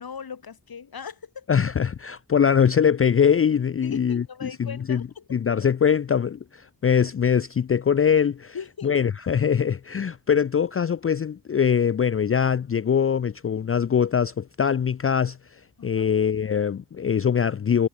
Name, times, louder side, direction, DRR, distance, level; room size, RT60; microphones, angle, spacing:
voice 1, 0.0-1.5 3.8-5.3 8.5-8.9 15.8-16.1, left 6 dB, 60° left, 3.3 m, -39 dB
voice 2, 1.5-5.0 5.3-8.5 8.8-15.4 15.8-17.9, left 7 dB, 35° left, 0.5 m, -22 dB
cardioid pair, 55°, 41 cm